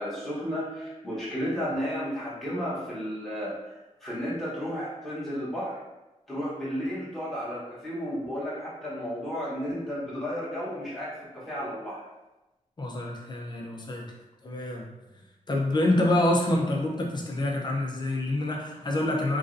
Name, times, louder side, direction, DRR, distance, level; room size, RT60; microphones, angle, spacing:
voice 1, 0.0-3.5 4.0-5.8 6.3-12.0, equal, ahead, -10 dB, 1.1 m, -33 dB
voice 2, 12.8-14.0 14.4-14.9 15.5-19.4, left 1 dB, 35° left, -1 dB, 0.5 m, -26 dB
3.0 x 2.6 x 2.5 m, 1.0 s
wide cardioid pair, 130°, 13 cm